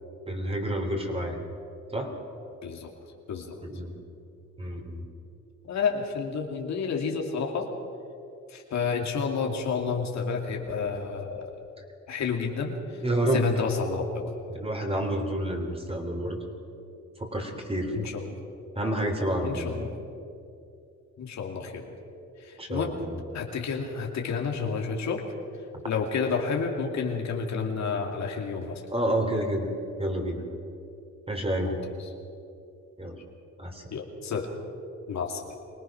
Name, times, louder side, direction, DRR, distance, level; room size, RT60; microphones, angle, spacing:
voice 1, 0.3-1.4 1.9-2.1 3.6-4.0 4.6-5.0 13.0-13.5 14.5-16.4 17.2-18.1 18.8-19.9 22.6-23.1 28.9-29.7 30.0-30.4 31.3-31.8 33.0-33.2 33.6-33.8, right 1 dB, 20° right, 3 dB, 3.6 m, -29 dB
voice 2, 3.3-3.6 5.7-7.7 8.5-11.5 12.1-13.0 13.3-14.3 17.9-18.4 19.4-19.9 21.2-22.0 22.4-22.9 23.3-25.3 25.8-28.8 31.6-31.9 33.9-34.5 35.1-35.4, left 5 dB, 65° left, 2 dB, 2.6 m, -30 dB
24.0 x 18.0 x 6.1 m, 2.6 s
cardioid pair, 90°, 30 cm